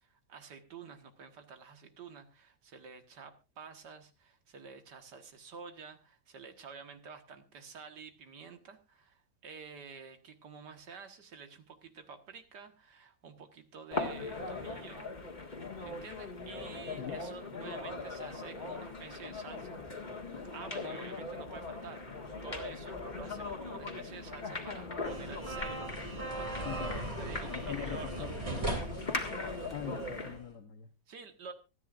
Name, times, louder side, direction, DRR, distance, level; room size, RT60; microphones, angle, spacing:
voice 1, 0.0-15.1 15.8-19.8 20.5-25.9 26.3-28.3 31.1-31.5, right 5 dB, 70° right, 7 dB, 2.2 m, -49 dB
sound 1, 13.9-30.4, left 3 dB, 25° left, 1.9 m, -40 dB
sound 2, 25.0-30.4, right 1 dB, 20° right, 2.4 m, -39 dB
voice 2, 26.6-27.0 27.4-28.7 29.7-30.9, left 9 dB, 65° left, 2 dB, 1.7 m, -42 dB
25.0 x 9.7 x 2.5 m, 0.29 s
omnidirectional pair, 1.9 m